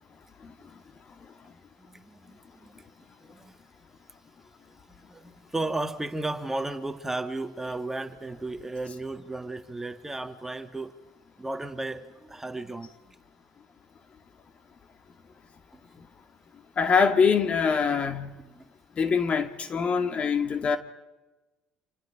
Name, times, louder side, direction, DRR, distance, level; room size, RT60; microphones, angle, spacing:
voice 1, 0.4-0.8 1.8-2.9 3.2-3.6 4.9-10.9 11.4-13.2 18.5-18.7, right 2 dB, 10° right, 1.8 m, -35 dB
voice 2, 16.8-18.3 19.0-20.8, left 6 dB, 45° left, 2.2 m, -23 dB
29.0 x 27.0 x 5.0 m
supercardioid pair, 75°, 3 cm